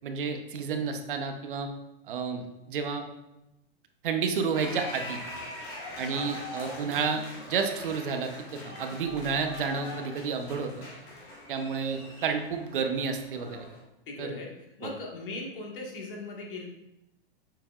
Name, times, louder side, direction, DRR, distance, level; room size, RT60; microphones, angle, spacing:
voice 1, 0.0-1.7 2.1-3.1 4.0-5.2 6.0-7.2 7.5-10.9 11.5-13.7 14.2-14.4 14.8-14.9, right 5 dB, 60° right, 6 dB, 0.9 m, -31 dB
sound 1, 4.5-13.8, left 1 dB, 25° left, 1.4 m, -42 dB
voice 2, 14.1-14.5 14.8-16.7, left 2 dB, 65° left, -1 dB, 1.7 m, -39 dB
6.9 x 5.7 x 2.4 m, 0.91 s
supercardioid pair, 175°, 30 cm